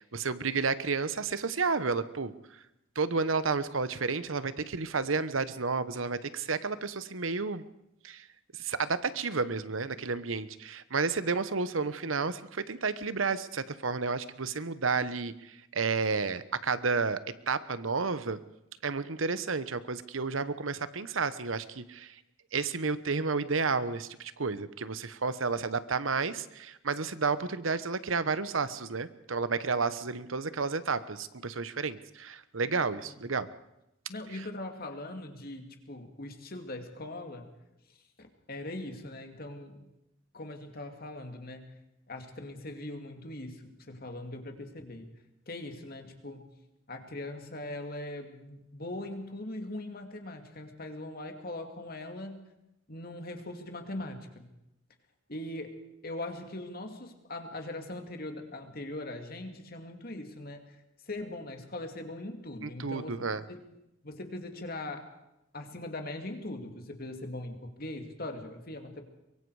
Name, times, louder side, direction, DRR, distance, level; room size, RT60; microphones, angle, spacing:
voice 1, 0.0-2.3 2.9-7.6 8.0-8.3 8.5-17.2 17.5-18.4 18.8-22.1 22.5-33.5 34.3-34.4 62.6-63.4, right 4 dB, 85° right, 14 dB, 1.1 m, -31 dB
voice 2, 34.1-37.5 38.2-39.8 40.3-41.7 42.1-45.0 45.5-46.5 46.9-52.4 52.9-54.5 55.3-55.7 56.0-60.8 61.1-63.1 63.5-63.6 64.0-65.0 65.5-69.0, left 1 dB, 50° left, 5 dB, 2.5 m, -40 dB
23.5 x 22.5 x 4.9 m, 0.88 s
head